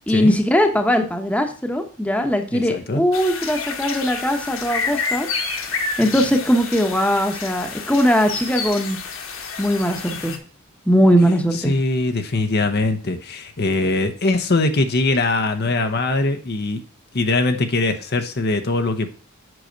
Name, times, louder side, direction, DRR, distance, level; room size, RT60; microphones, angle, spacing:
voice 1, 0.1-5.3 5.7-9.0 9.6-10.4 10.9-11.7, equal, 5° left, 4 dB, 1.1 m, -20 dB
voice 2, 2.5-3.0 11.5-16.8 17.1-19.1, left 2 dB, 50° left, 7 dB, 0.9 m, -21 dB
sound 1, 3.1-10.4, left 4 dB, 65° left, 1.7 m, -29 dB
7.8 x 5.7 x 5.2 m, 0.41 s
head